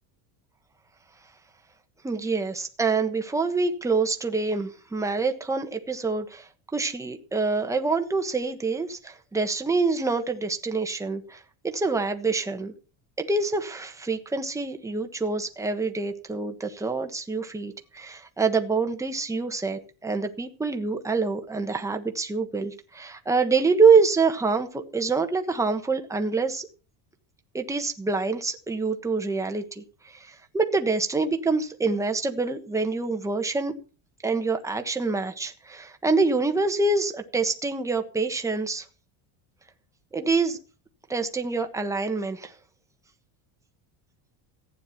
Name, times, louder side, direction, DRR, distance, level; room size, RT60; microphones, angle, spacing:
voice 1, 2.0-12.7 13.2-26.7 27.5-33.7 34.2-38.8 40.1-40.6 41.1-42.5, right 4 dB, 5° right, 5 dB, 1.3 m, -26 dB
15.0 x 9.6 x 5.9 m, 0.35 s
cardioid pair, 160°, 45 cm